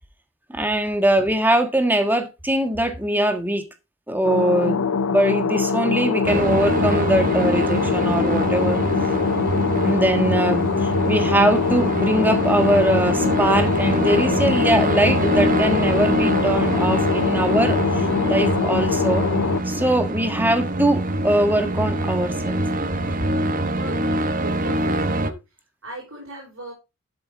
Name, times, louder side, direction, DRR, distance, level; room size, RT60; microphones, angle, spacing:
voice 1, 0.5-3.6 4.1-8.8 9.8-19.2 19.7-22.6, right 1 dB, 10° right, 1.4 m, -22 dB
sound 1, 4.2-19.6, left 5 dB, 75° left, 0.5 m, -23 dB
sound 2, 6.2-25.3, right 1 dB, 40° right, 1.0 m, -24 dB
voice 2, 23.8-25.4 25.8-26.7, right 2 dB, 70° right, 5.1 m, -38 dB
12.0 x 7.7 x 3.4 m
head